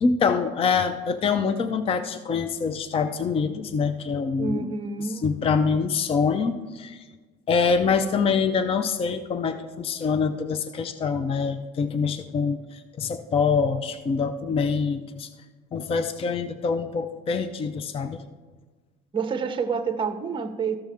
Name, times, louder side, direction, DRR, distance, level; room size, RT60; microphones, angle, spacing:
voice 1, 0.0-4.7 5.0-7.0 7.5-15.3 15.7-18.2, left 5 dB, 25° left, 10 dB, 0.5 m, -25 dB
voice 2, 4.4-5.2 19.1-20.8, right 5 dB, 25° right, 8 dB, 0.8 m, -28 dB
13.5 x 6.3 x 3.5 m, 1.3 s
cardioid pair, 120°, 21 cm